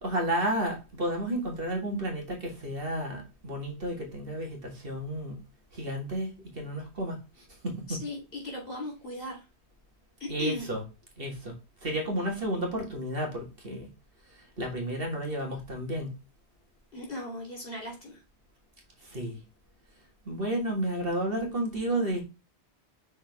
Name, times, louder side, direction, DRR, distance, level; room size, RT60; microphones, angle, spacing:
voice 1, 0.0-5.4 5.7-7.2 7.6-8.0 10.3-10.8 11.2-11.5 11.8-13.9 14.6-16.1 19.0-19.4 20.3-22.2, right 1 dB, 55° right, 2.1 m, -32 dB
voice 2, 7.9-9.4 10.2-10.7 16.9-18.2, left 2 dB, 55° left, 3.6 m, -37 dB
6.1 x 4.5 x 3.5 m
omnidirectional pair, 1.1 m